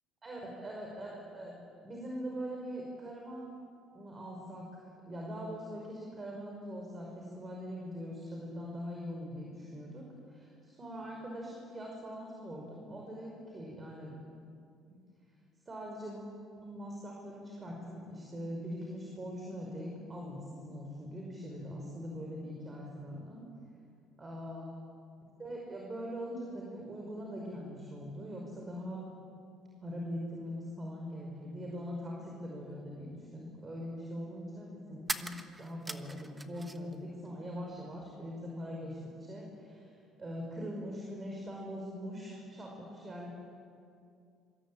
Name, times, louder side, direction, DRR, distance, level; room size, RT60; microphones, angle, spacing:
voice 1, 0.2-1.5 1.8-3.5 3.9-4.8 5.1-14.1 14.9-15.0 15.7-16.2 16.6-23.4 24.2-24.9 25.4-29.1 29.8-35.3 35.6-43.3, equal, 25° right, -1 dB, 5.5 m, -42 dB
sound 1, 35.0-37.0 37.3-38.1, right 1 dB, 10° right, 1.3 m, -41 dB
26.0 x 25.0 x 8.8 m, 2.4 s
cardioid pair, 120°, 0 cm